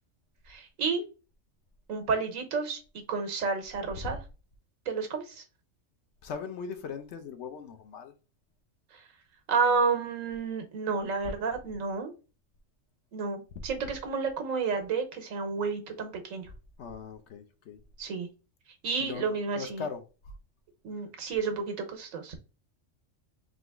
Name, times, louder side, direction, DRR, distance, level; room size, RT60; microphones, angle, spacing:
voice 1, 0.5-1.0 1.9-2.8 3.1-4.2 4.9-5.4 9.5-12.1 13.1-16.5 18.0-18.3 18.8-19.8 20.8-22.4, right 5 dB, 90° right, 1.3 m, -30 dB
voice 2, 6.2-8.1 16.8-17.8 19.0-20.0, left 5 dB, 65° left, 0.9 m, -39 dB
3.9 x 2.9 x 3.4 m
omnidirectional pair, 1.3 m